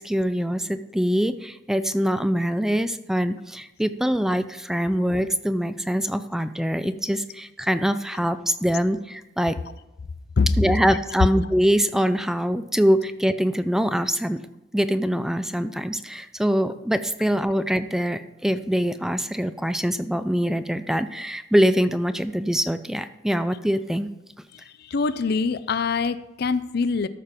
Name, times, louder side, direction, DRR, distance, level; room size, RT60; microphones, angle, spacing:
voice 1, 0.0-9.6 10.6-14.4 14.7-24.1, equal, 5° right, 12 dB, 0.3 m, -24 dB
voice 2, 24.5-27.1, left 4 dB, 60° left, 15 dB, 0.5 m, -24 dB
13.5 x 5.1 x 5.9 m, 0.95 s
head